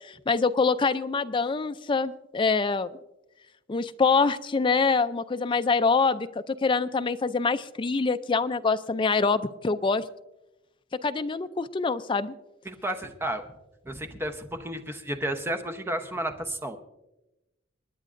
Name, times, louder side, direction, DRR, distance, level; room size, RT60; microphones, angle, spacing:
voice 1, 0.1-2.9 3.7-10.0 11.0-12.3, left 4 dB, 25° left, 11 dB, 0.4 m, -25 dB
voice 2, 12.6-13.4 13.8-16.8, right 1 dB, 10° right, 6 dB, 0.8 m, -32 dB
27.5 x 10.0 x 2.5 m, 0.97 s
head